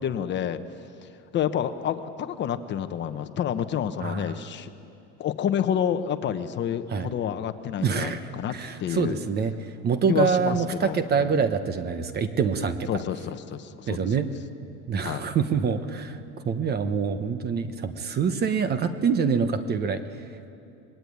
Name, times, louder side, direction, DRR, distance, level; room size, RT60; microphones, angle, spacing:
voice 1, 0.0-0.6 1.3-4.7 5.2-8.5 8.8-9.2 10.1-11.4 12.9-14.1 15.0-15.2, left 9 dB, 35° left, 9 dB, 1.0 m, -29 dB
voice 2, 4.0-4.3 6.9-7.1 7.8-13.0 13.9-14.3 14.9-16.2 16.4-20.0, right 6 dB, 30° right, 10 dB, 1.1 m, -26 dB
26.0 x 21.0 x 9.5 m, 2.7 s
cardioid pair, 150°, 32 cm